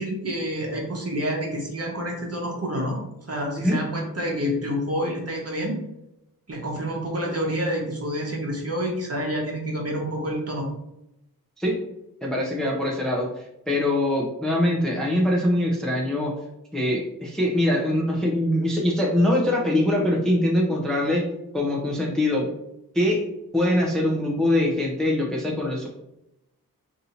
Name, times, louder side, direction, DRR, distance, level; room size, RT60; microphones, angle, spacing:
voice 1, 0.0-3.0 3.3-5.8 6.5-10.7, equal, 40° right, -1 dB, 1.0 m, -28 dB
voice 2, 12.2-16.3 16.7-21.3 21.5-22.5 22.9-23.3 23.5-25.9, left 1 dB, ahead, -2 dB, 0.6 m, -23 dB
2.7 x 2.6 x 4.2 m, 0.84 s
wide cardioid pair, 100°, 37 cm